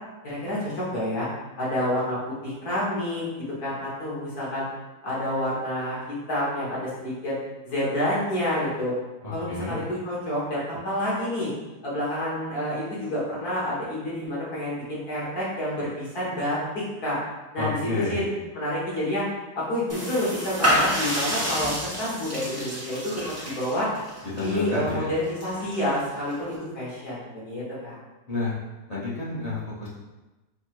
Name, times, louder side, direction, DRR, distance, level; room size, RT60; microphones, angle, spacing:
voice 1, 0.2-1.3 1.6-3.3 3.6-4.6 5.0-6.0 6.3-7.4 7.6-8.9 9.3-11.5 11.8-17.2 17.5-18.2 18.6-19.2 19.6-23.9 24.4-28.0, left 1 dB, 65° left, -7 dB, 2.1 m, -28 dB
voice 2, 9.2-9.8 17.6-18.3 24.3-25.1 28.3-28.6 28.9-29.9, left 2 dB, 35° left, -7 dB, 0.7 m, -30 dB
sound 1, 19.9-26.6, equal, 20° right, 0.4 m, -30 dB
4.5 x 2.2 x 4.6 m, 1.1 s
omnidirectional pair, 1.8 m